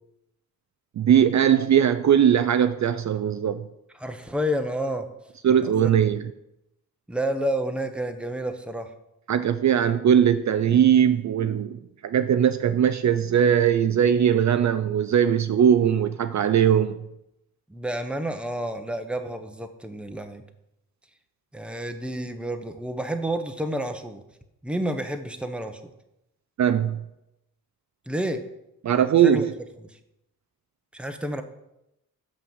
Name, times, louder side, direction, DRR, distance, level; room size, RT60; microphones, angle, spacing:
voice 1, 1.0-3.7 5.4-6.3 9.3-17.0 26.6-27.0 28.8-29.5, right 9 dB, 50° right, 0.5 m, -20 dB
voice 2, 4.0-5.1 5.6-5.9 7.1-8.9 17.7-20.4 21.5-24.2 24.6-25.8 28.1-28.4 29.2-29.5 30.9-31.4, right 1 dB, 5° right, 0.8 m, -29 dB
6.4 x 5.8 x 7.2 m
cardioid pair, 100°, 36 cm